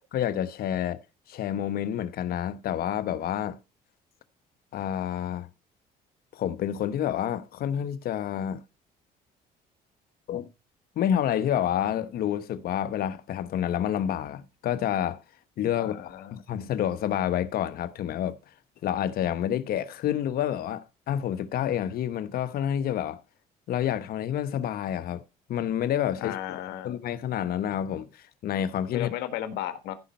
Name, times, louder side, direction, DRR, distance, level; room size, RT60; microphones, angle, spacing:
voice 1, 0.1-1.0 1.3-3.6 4.7-5.5 6.3-8.6 10.3-10.5 11.0-15.2 15.6-18.4 18.8-23.2 23.7-25.2 25.5-26.4 26.8-29.1, left 10 dB, 60° left, 1.1 m, -28 dB
voice 2, 15.8-16.4 26.2-26.9 28.9-29.9, left 12 dB, 80° left, 1.6 m, -34 dB
15.0 x 5.2 x 4.4 m
cardioid pair, 100°, 17 cm